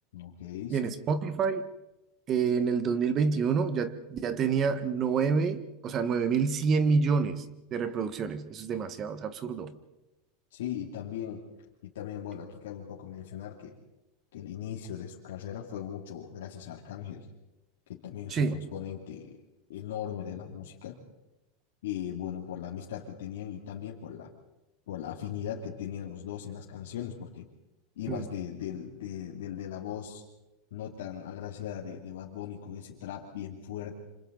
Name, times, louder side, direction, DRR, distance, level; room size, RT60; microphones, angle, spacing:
voice 1, 0.1-0.9 10.5-11.5 11.8-13.8 14.3-17.2 17.9-19.4 19.7-21.0 21.8-24.3 24.9-27.5 28.0-30.2 30.7-33.9, left 9 dB, 85° left, -3 dB, 2.8 m, -38 dB
voice 2, 0.7-1.7 2.3-7.4 7.7-9.7 18.3-18.6 28.1-28.2, right 5 dB, 30° right, 12 dB, 1.5 m, -28 dB
28.5 x 26.5 x 4.1 m, 0.99 s
supercardioid pair, 145°, 0 cm